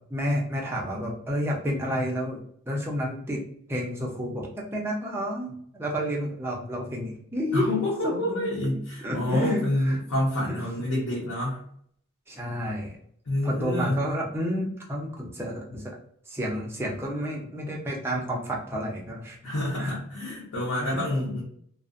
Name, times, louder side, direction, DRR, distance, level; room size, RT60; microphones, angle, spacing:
voice 1, 0.1-2.4 2.7-3.4 3.7-8.6 9.0-10.0 10.4-10.6 12.3-13.0 13.4-16.0 16.3-19.4 19.8-20.0 20.8-21.1, equal, 10° right, -3 dB, 0.5 m, -30 dB
voice 2, 7.5-11.6 13.3-14.1 19.4-21.4, left 1 dB, 90° left, -6 dB, 0.8 m, -28 dB
2.4 x 2.1 x 2.4 m, 0.65 s
head